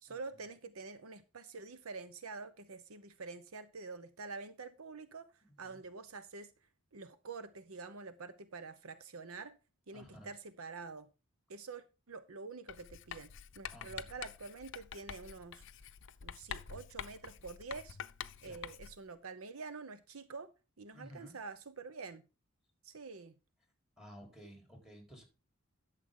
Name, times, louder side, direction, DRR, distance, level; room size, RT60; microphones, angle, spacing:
voice 1, 0.0-5.3 5.6-6.5 6.9-9.6 9.9-11.1 11.5-13.3 13.5-15.6 16.2-18.0 18.4-20.5 20.8-22.2 22.8-23.3, right 4 dB, 80° right, 12 dB, 0.8 m, -47 dB
voice 2, 9.9-10.3 13.7-14.1 18.5-18.6 20.9-21.4 24.0-25.2, equal, 5° right, 2 dB, 3.8 m, -54 dB
Writing, 12.7-19.1, left 8 dB, 60° left, 0.6 m, -47 dB
12.0 x 6.8 x 3.7 m, 0.30 s
head